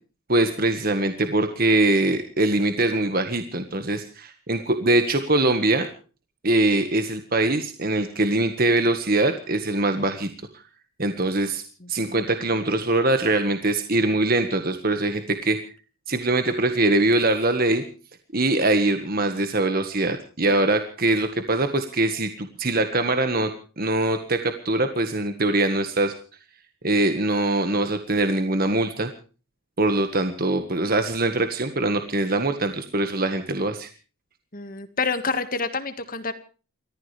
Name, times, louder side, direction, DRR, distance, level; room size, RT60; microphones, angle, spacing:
voice 1, 0.3-5.9 6.4-10.3 11.0-11.6 11.9-15.6 16.1-17.8 18.3-23.5 23.8-26.1 26.8-29.1 29.8-33.9, right 2 dB, 40° right, 7 dB, 1.6 m, -22 dB
voice 2, 11.8-12.2 34.5-36.3, left 4 dB, 40° left, 9 dB, 1.8 m, -28 dB
30.0 x 14.0 x 3.4 m, 0.38 s
head